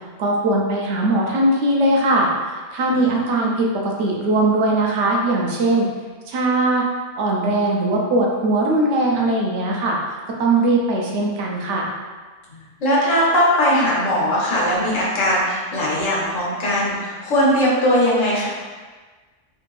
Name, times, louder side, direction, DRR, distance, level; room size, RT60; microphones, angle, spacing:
voice 1, 0.2-5.9 6.3-6.8 7.2-11.9, right 2 dB, 70° right, -1 dB, 0.9 m, -20 dB
voice 2, 2.9-3.2 12.5-18.5, equal, 90° left, -5 dB, 1.3 m, -20 dB
3.3 x 2.5 x 3.1 m, 1.4 s
omnidirectional pair, 1.3 m